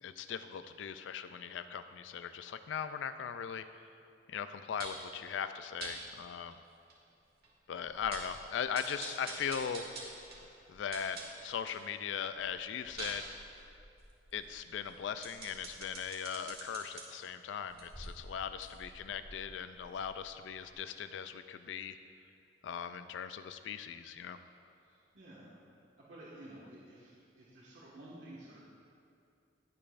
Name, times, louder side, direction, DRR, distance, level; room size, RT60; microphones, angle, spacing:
voice 1, 0.0-3.7 4.3-6.6 7.7-9.9 10.7-13.3 13.6-13.7 14.3-22.0 22.6-24.4, left 7 dB, 80° left, 11 dB, 0.3 m, -39 dB
sound 1, 4.8-5.1 5.8-6.0 6.5-6.6 6.9-7.0 7.4-7.5 7.9-8.4 8.7-11.8 12.2-17.0 17.6-20.3 20.7-20.8, right 3 dB, 55° right, 1.7 m, -47 dB
voice 2, 24.8-25.5 26.0-28.6, right 1 dB, 85° right, -8 dB, 1.6 m, -52 dB
19.0 x 6.8 x 2.5 m, 2.5 s
head